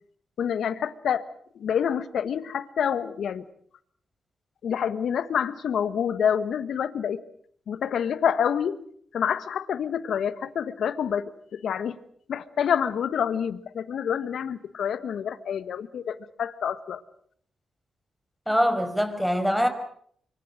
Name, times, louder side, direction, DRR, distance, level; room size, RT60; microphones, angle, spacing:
voice 1, 0.4-1.2 1.5-3.4 4.6-7.2 7.7-8.8 9.1-12.0 12.3-17.0, left 8 dB, 70° left, 1.4 m, -27 dB
voice 2, 18.5-19.7, equal, ahead, 5.4 m, -23 dB
25.5 x 24.0 x 6.4 m
supercardioid pair, 45°, 0 cm